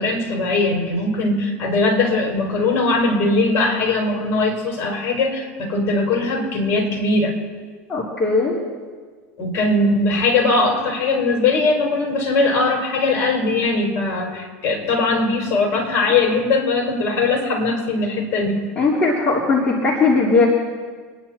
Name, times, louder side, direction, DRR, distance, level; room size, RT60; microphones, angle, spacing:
voice 1, 0.0-7.3 9.4-18.7, left 3 dB, 40° left, 0 dB, 5.2 m, -20 dB
voice 2, 7.9-8.6 18.7-20.5, left 3 dB, 20° left, -6 dB, 3.2 m, -18 dB
27.0 x 10.5 x 4.4 m, 1.5 s
supercardioid pair, 135°, 7 cm